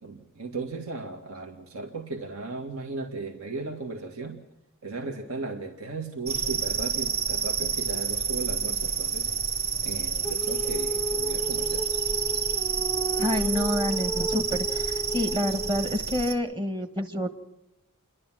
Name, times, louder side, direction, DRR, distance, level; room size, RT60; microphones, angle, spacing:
voice 1, 0.0-4.4 4.8-11.9, right 3 dB, 80° right, 2 dB, 2.1 m, -36 dB
sound 1, 6.3-16.3, right 6 dB, 45° right, 1.8 m, -29 dB
Female singing, 10.2-15.9, right 1 dB, 10° left, 0.6 m, -34 dB
voice 2, 13.2-17.3, left 1 dB, 20° right, 5 dB, 1.4 m, -28 dB
29.5 x 12.0 x 7.6 m, 0.94 s
head